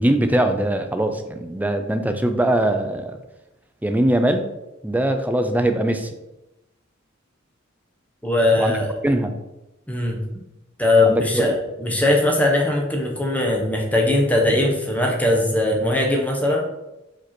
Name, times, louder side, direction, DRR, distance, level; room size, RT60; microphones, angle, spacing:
voice 1, 0.0-3.2 3.8-4.5 4.8-6.1 8.6-8.7 9.0-9.3 11.0-11.6, right 1 dB, 10° right, 7 dB, 0.5 m, -21 dB
voice 2, 8.2-8.9 9.9-10.2 10.8-16.6, left 2 dB, 10° left, 0 dB, 1.0 m, -20 dB
5.0 x 4.6 x 4.3 m, 0.95 s
head